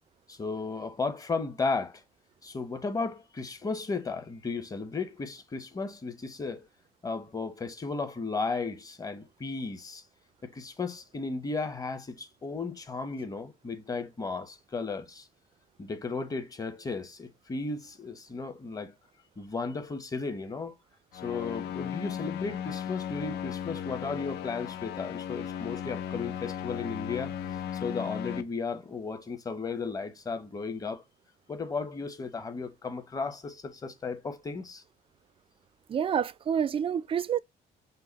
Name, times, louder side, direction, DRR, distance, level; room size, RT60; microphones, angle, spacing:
voice 1, 0.3-2.0 2.4-6.7 7.0-10.0 10.4-15.3 15.8-18.9 19.4-20.7 21.2-27.3 27.8-31.0 31.5-34.8, left 4 dB, 20° left, 0.9 m, -35 dB
sound 1, 21.1-28.4, left 9 dB, 75° left, 0.6 m, -36 dB
voice 2, 35.9-37.4, right 8 dB, 30° right, 0.4 m, -28 dB
5.5 x 2.0 x 3.9 m
cardioid pair, 110°, 17 cm